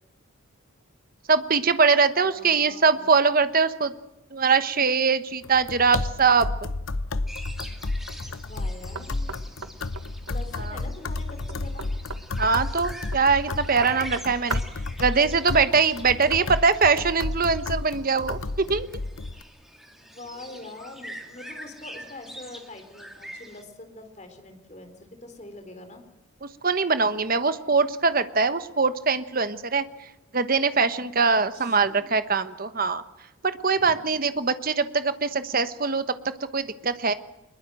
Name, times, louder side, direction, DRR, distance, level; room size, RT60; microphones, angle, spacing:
voice 1, 1.3-3.9 4.3-6.5 12.4-14.6 15.0-18.9 26.4-29.8 30.3-33.0 33.4-37.1, right 5 dB, 40° right, 11 dB, 1.1 m, -22 dB
voice 2, 2.2-3.2 8.3-9.2 10.3-11.9 20.0-26.0 31.3-32.1 33.8-34.1, left 2 dB, 30° left, 6 dB, 3.9 m, -44 dB
sound 1, 5.4-19.4, left 2 dB, 70° left, 0.8 m, -32 dB
sound 2, 7.3-23.6, right 1 dB, ahead, 2.2 m, -45 dB
Knock, 8.9-14.9, right 5 dB, 75° right, 1.5 m, -40 dB
24.5 x 21.5 x 7.7 m, 0.93 s
head